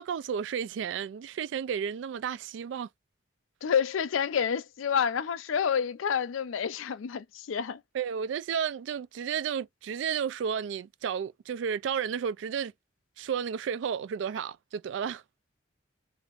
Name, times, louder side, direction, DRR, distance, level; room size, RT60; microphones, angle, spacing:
voice 1, 0.0-2.9 7.9-12.7 13.2-15.2, right 7 dB, 65° right, 0.3 m, -32 dB
voice 2, 3.6-7.8, left 7 dB, 85° left, 0.4 m, -28 dB
3.5 x 2.8 x 2.4 m
head